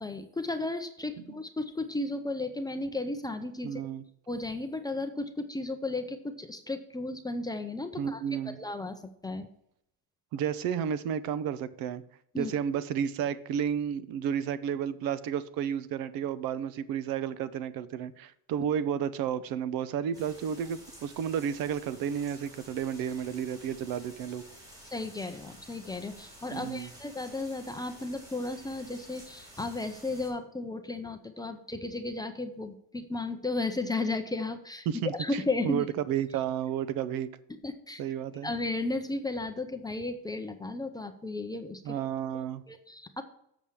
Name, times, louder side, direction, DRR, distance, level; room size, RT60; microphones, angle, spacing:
voice 1, 0.0-3.8 4.3-9.5 12.3-12.5 24.9-34.9 35.2-35.9 37.6-38.0 38.4-42.0 42.7-43.2, left 2 dB, 10° left, 7 dB, 0.5 m, -34 dB
voice 2, 3.6-4.0 8.0-8.6 10.3-12.0 12.4-24.4 26.5-26.9 34.9-37.3 38.0-38.5 41.8-42.6, right 8 dB, 65° right, 15 dB, 0.7 m, -32 dB
sound 1, 20.1-30.3, right 1 dB, 10° right, 3.9 m, -51 dB
7.3 x 7.1 x 4.6 m, 0.74 s
cardioid pair, 145°, 38 cm